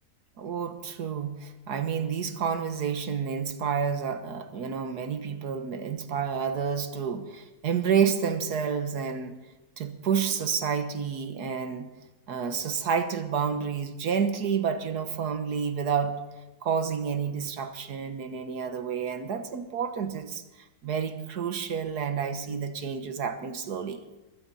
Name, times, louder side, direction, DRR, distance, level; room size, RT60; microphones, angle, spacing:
voice 1, 0.4-9.4 9.8-11.9 12.3-16.2 16.6-20.4 20.8-24.0, right 7 dB, 90° right, 9 dB, 1.9 m, -29 dB
21.5 x 15.5 x 4.2 m, 1.1 s
omnidirectional pair, 1.6 m